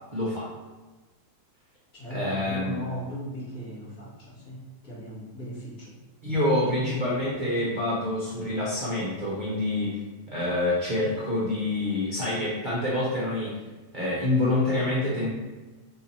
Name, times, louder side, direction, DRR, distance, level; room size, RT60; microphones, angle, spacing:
voice 1, 0.1-0.5 2.1-2.8 6.2-10.0 10.3-13.6 13.9-15.3, left 1 dB, 35° right, -8 dB, 1.0 m, -27 dB
voice 2, 1.9-5.9 6.8-6.9, equal, 65° left, -6 dB, 2.0 m, -38 dB
3.9 x 2.8 x 4.1 m, 1.2 s
omnidirectional pair, 1.7 m